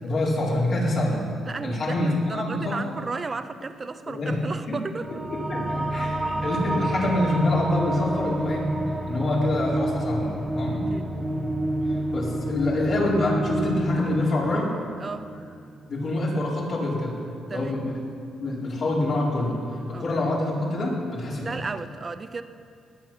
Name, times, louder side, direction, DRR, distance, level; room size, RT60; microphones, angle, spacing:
voice 1, 0.0-1.3 1.6-2.9 4.1-4.4 4.7-4.8 5.1-10.9 11.7-11.8 12.1-14.7 15.9-17.2 17.5-18.0 18.4-19.6 19.9-21.6, left 1 dB, 55° left, -5 dB, 4.4 m, -26 dB
voice 2, 1.5-5.1 10.7-11.1 15.0-15.3 17.5-17.8 19.9-20.1 21.4-22.4, right 4 dB, 30° right, 10 dB, 0.8 m, -34 dB
sound 1, 5.0-15.9, right 1 dB, 15° right, 1.1 m, -29 dB
21.0 x 8.8 x 5.8 m, 2.3 s
cardioid pair, 90°, 0 cm